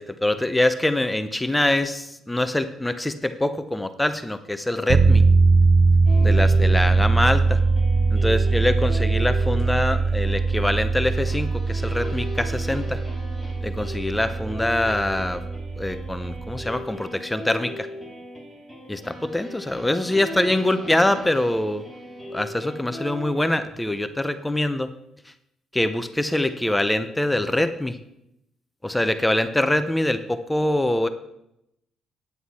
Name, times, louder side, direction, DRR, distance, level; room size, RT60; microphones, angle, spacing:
voice 1, 0.0-5.2 6.2-7.6 8.1-13.0 13.6-15.4 15.8-17.9 18.9-21.8 22.3-24.9 25.7-28.0 28.8-31.1, left 1 dB, 10° left, 10 dB, 0.6 m, -24 dB
sound 1, 4.9-16.8, right 4 dB, 50° right, 0.8 m, -21 dB
sound 2, 6.1-23.8, left 1 dB, 10° right, 2.2 m, -38 dB
9.5 x 8.0 x 4.2 m, 0.81 s
cardioid pair, 100°, 0 cm